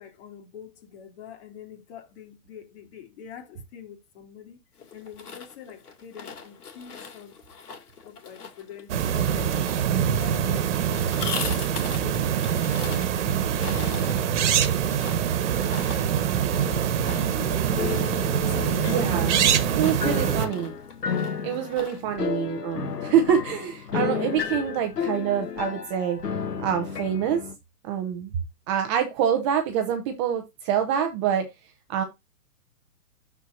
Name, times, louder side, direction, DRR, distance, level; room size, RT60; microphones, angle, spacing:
voice 1, 0.0-4.6 4.9-7.4 7.8-13.1 13.5-14.1 16.2-16.3 17.0-19.2 22.1-22.3, left 8 dB, 45° left, 3.2 m, -44 dB
sound 1, 4.8-22.1, left 5 dB, 70° left, 2.9 m, -41 dB
sound 2, 8.9-20.5, right 9 dB, 50° right, 1.5 m, -24 dB
sound 3, 16.5-27.5, left 6 dB, 90° left, 1.4 m, -32 dB
voice 2, 18.9-19.4 19.7-20.7 21.4-26.2 26.6-27.4 27.8-28.3 28.7-31.5 31.9-32.0, right 8 dB, 20° right, 0.7 m, -26 dB
12.5 x 4.5 x 2.7 m
hypercardioid pair, 145°, 47 cm